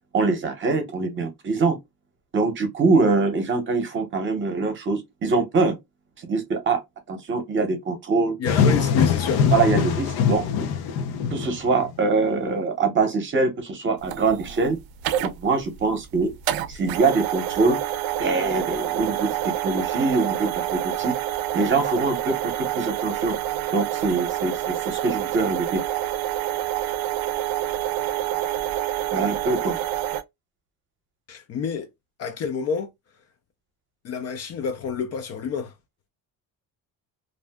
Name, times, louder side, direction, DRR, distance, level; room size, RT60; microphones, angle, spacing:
voice 1, 0.1-1.8 2.3-5.8 6.3-6.8 7.1-8.4 9.5-10.7 11.3-14.8 15.2-16.3 16.7-17.8 18.2-21.1 21.5-23.4 23.7-25.8 29.1-29.8, right 3 dB, 35° right, 0.8 m, -23 dB
sound 1, 8.4-12.0, left 6 dB, 85° left, 0.7 m, -22 dB
voice 2, 8.4-9.5 31.3-31.9 32.2-32.9 34.0-35.7, left 6 dB, 45° left, 0.4 m, -28 dB
sound 2, 14.0-30.2, right 13 dB, 80° right, 0.5 m, -27 dB
2.5 x 2.0 x 3.5 m
cardioid pair, 160°, 36 cm